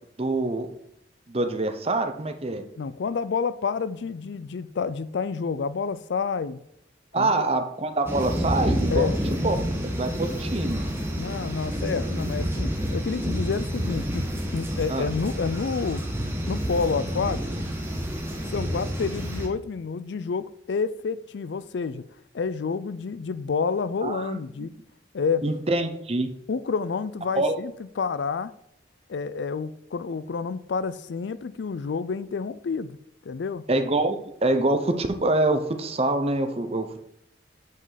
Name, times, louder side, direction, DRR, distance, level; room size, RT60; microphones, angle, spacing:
voice 1, 0.2-0.7 1.3-2.6 7.1-9.1 9.4-9.6 9.8-10.9 14.9-15.1 24.0-24.7 25.4-26.3 27.3-27.5 33.7-37.0, right 2 dB, 30° right, 0.8 m, -25 dB
voice 2, 2.8-6.6 7.2-7.5 8.9-9.2 11.2-14.3 14.5-16.0 16.5-17.4 18.5-22.0 22.3-24.7 25.1-25.4 26.5-28.5 29.1-33.0 33.2-33.6, left 5 dB, 70° left, 0.4 m, -29 dB
sound 1, 8.1-19.5, equal, 15° right, 1.2 m, -29 dB
9.4 x 5.2 x 4.0 m
head